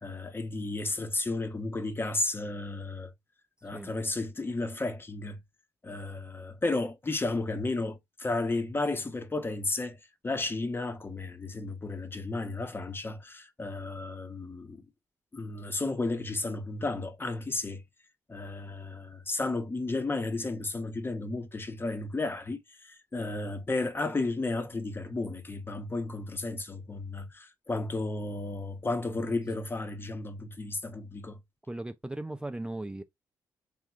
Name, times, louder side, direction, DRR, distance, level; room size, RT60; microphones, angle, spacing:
voice 1, 0.0-3.1 3.6-5.4 5.8-14.8 15.3-17.8 18.3-31.4, left 2 dB, 25° left, 1.0 m, -33 dB
voice 2, 31.7-33.0, right 2 dB, 10° right, 0.4 m, -37 dB
3.6 x 3.0 x 3.5 m
supercardioid pair, 60°, 8 cm